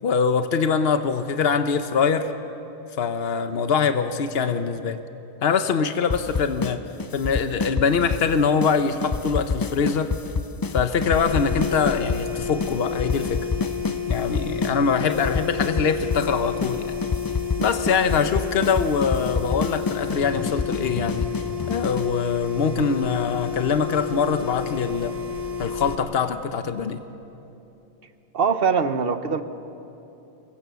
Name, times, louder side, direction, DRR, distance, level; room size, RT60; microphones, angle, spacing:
voice 1, 0.0-2.3 3.0-5.0 5.4-6.8 7.1-10.1 10.7-13.4 14.1-16.9 17.6-21.3 21.7-25.2 25.6-27.0, left 6 dB, 70° left, 9 dB, 1.1 m, -23 dB
sound 1, 6.1-6.7 7.0-8.3 8.6-8.8 9.0-12.2 12.6-12.7 13.0-14.7 15.0-16.3 16.6-16.7 17.0-22.1, left 4 dB, 35° left, 0.3 m, -27 dB
sound 2, 11.1-26.0, left 7 dB, 35° right, 1.6 m, -31 dB
voice 2, 28.3-29.4, right 5 dB, 65° right, 10 dB, 1.2 m, -22 dB
24.5 x 22.0 x 6.9 m, 2.9 s
omnidirectional pair, 1.1 m